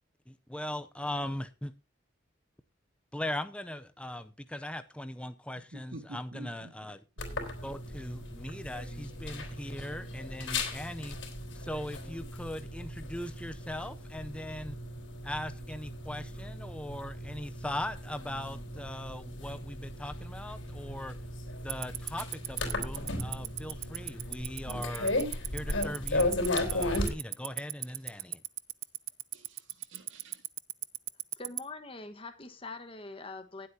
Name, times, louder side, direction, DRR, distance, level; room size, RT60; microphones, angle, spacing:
voice 1, 0.3-1.7 3.1-7.0 7.6-11.2 11.5-14.8 15.2-21.2 21.6-25.2 25.5-26.4 26.6-28.4, left 1 dB, 5° left, 0.6 m, -39 dB
voice 2, 5.7-6.7 29.3-30.4, right 2 dB, 80° right, 2.1 m, -48 dB
sound 1, 7.2-27.1, left 2 dB, 75° left, 3.9 m, -36 dB
Tick-tock, 21.7-31.6, right 18 dB, 50° right, 0.5 m, -33 dB
voice 3, 31.4-33.7, left 3 dB, 30° left, 1.4 m, -43 dB
19.0 x 8.2 x 2.8 m
head